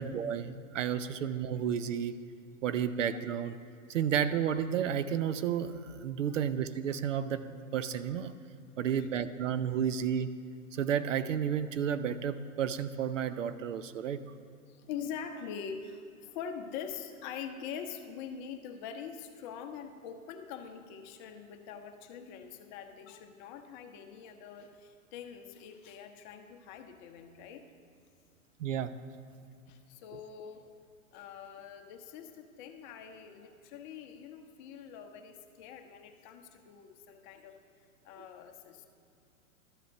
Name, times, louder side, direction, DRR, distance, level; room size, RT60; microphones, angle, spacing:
voice 1, 0.0-2.2 2.6-3.6 3.9-8.3 8.8-10.3 10.7-14.2 28.6-28.9 38.2-38.3, right 8 dB, 60° right, 12 dB, 0.6 m, -32 dB
voice 2, 8.7-9.1 14.7-27.6 29.7-30.8 31.1-37.6 38.0-38.9, left 7 dB, 35° left, 6 dB, 0.9 m, -44 dB
12.5 x 7.6 x 6.6 m, 2.3 s
figure-of-eight pair, 110°, 43 cm